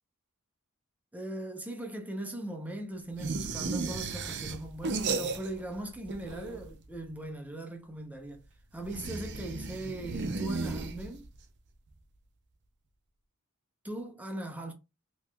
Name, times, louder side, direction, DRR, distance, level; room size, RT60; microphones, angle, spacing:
voice 1, 1.1-8.4 8.7-11.3 13.8-14.7, right 1 dB, 5° right, 0.6 m, -39 dB
sound 1, 3.2-5.8 6.0-6.8 8.8-11.4, right 4 dB, 55° right, 0.5 m, -35 dB
3.5 x 2.9 x 2.2 m
head